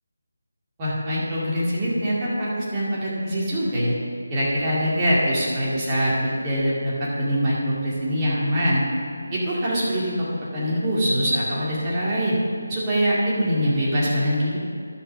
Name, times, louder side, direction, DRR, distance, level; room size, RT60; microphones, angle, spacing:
voice 1, 0.8-3.9 4.3-8.8 9.3-10.3 10.5-12.4 12.7-14.6, equal, 20° right, -8 dB, 2.2 m, -23 dB
11.0 x 5.7 x 5.9 m, 2.3 s
figure-of-eight pair, 155°, 0 cm